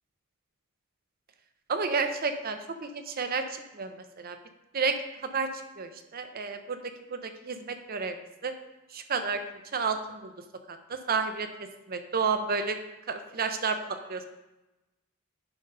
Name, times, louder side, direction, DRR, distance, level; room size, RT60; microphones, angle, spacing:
voice 1, 1.7-4.4 4.7-5.5 5.8-8.1 8.4-8.5 8.9-9.4 9.7-10.3 10.7-11.5 11.9-12.8 13.1-14.2, right 5 dB, 45° right, 8 dB, 0.7 m, -31 dB
10.5 x 4.1 x 5.3 m, 1.0 s
head